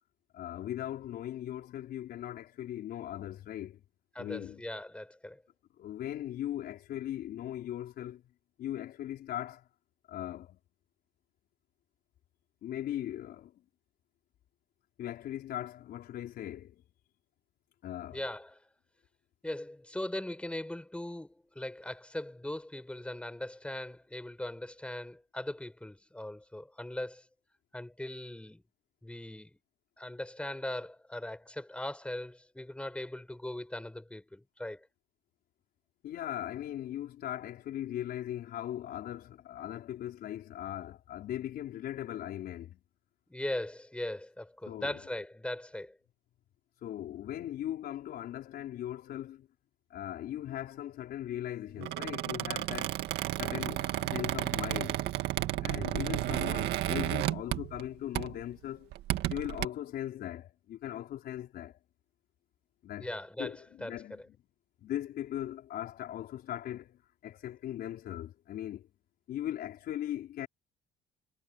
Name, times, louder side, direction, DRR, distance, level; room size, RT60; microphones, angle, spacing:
voice 1, 0.3-3.8 4.2-4.6 5.8-8.2 8.6-9.7 10.1-10.6 12.6-13.6 15.0-16.8 17.8-18.2 36.0-42.8 44.7-45.0 46.8-49.5 49.9-53.0 53.4-55.1 55.6-58.9 59.3-61.8 62.8-63.1 63.4-64.2 64.8-68.9 69.3-70.5, left 12 dB, 65° left, 4.8 m, -39 dB
voice 2, 4.2-5.4 18.1-18.6 19.4-27.2 27.7-28.6 29.0-29.5 30.0-34.9 43.3-46.0 63.0-63.9, left 1 dB, 5° left, 7.5 m, -39 dB
Squeak, 51.8-57.9 58.1-58.4 58.9-59.6, right 15 dB, 80° right, 2.1 m, -32 dB
cardioid pair, 110°, 17 cm